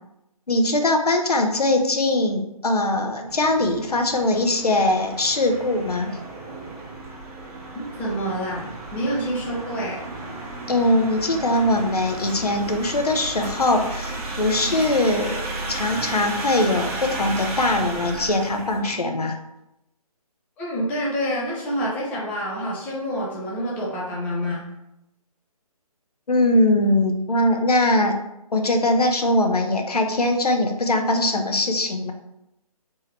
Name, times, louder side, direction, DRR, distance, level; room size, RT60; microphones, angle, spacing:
voice 1, 0.5-6.1 10.7-19.4 26.3-28.2 28.5-32.1, left 1 dB, 80° left, 5 dB, 0.9 m, -21 dB
sound 1, 3.3-18.9, right 2 dB, 20° right, 1.0 m, -34 dB
voice 2, 7.7-10.0 14.7-14.8 20.6-24.7, equal, 10° left, -4 dB, 0.6 m, -27 dB
3.7 x 3.2 x 4.4 m, 0.86 s
figure-of-eight pair, 150°, 19 cm